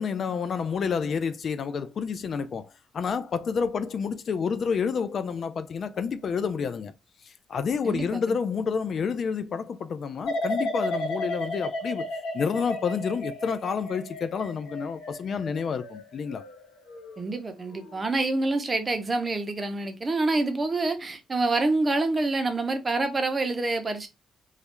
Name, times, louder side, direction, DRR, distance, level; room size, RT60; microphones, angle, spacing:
voice 1, 0.0-6.9 7.2-12.1 12.3-16.4, left 6 dB, 55° left, 0.3 m, -29 dB
voice 2, 7.8-8.4 17.2-24.1, right 2 dB, 30° right, 0.7 m, -27 dB
sound 1, 10.3-17.2 17.6-18.0, left 1 dB, 80° left, 1.0 m, -34 dB
3.1 x 2.4 x 2.9 m
cardioid pair, 90°, 0 cm